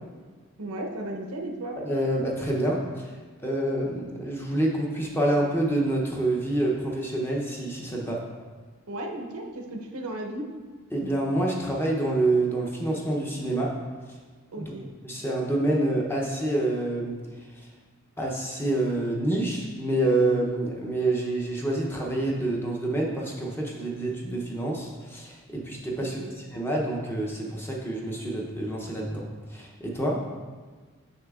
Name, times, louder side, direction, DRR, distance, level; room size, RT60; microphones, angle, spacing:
voice 1, 0.6-1.8 8.9-10.5 14.5-14.9 26.0-26.3, right 1 dB, 90° right, 1 dB, 0.7 m, -35 dB
voice 2, 1.8-8.2 10.9-13.7 14.1-14.2 14.6-14.7 15.0-17.7 18.2-30.2, right 1 dB, 10° left, -2 dB, 0.6 m, -27 dB
6.5 x 6.1 x 2.4 m, 1.4 s
head